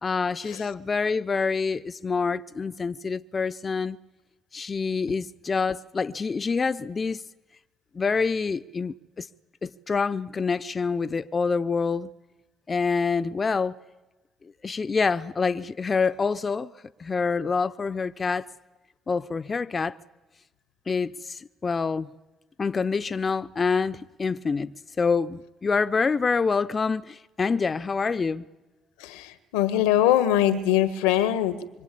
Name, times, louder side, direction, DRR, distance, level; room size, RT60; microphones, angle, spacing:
voice 1, 0.0-4.0 4.5-7.2 7.9-9.3 9.6-12.1 12.7-13.7 14.6-16.7 17.0-18.5 19.1-20.0 20.9-22.1 22.6-28.5, left 5 dB, 40° left, 0.8 m, -26 dB
voice 2, 29.5-31.8, left 11 dB, 85° left, 1.6 m, -22 dB
25.5 x 24.5 x 8.5 m
hypercardioid pair, 55°, 0 cm